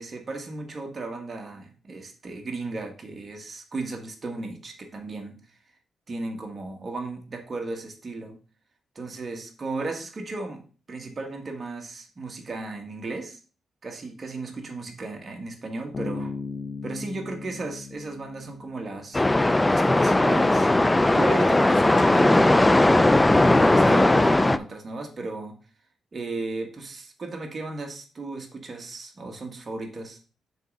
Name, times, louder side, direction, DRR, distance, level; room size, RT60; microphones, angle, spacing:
voice 1, 0.0-5.4 6.1-8.4 8.9-13.4 13.8-16.3 16.8-19.2 19.7-20.7 21.1-25.6 26.1-30.2, right 3 dB, 35° right, 2 dB, 1.6 m, -35 dB
Bass guitar, 15.9-19.4, left 4 dB, 45° left, 0.7 m, -37 dB
sound 1, 19.1-24.6, left 2 dB, 15° left, 0.4 m, -18 dB
6.7 x 3.7 x 5.4 m, 0.37 s
cardioid pair, 110°, 0 cm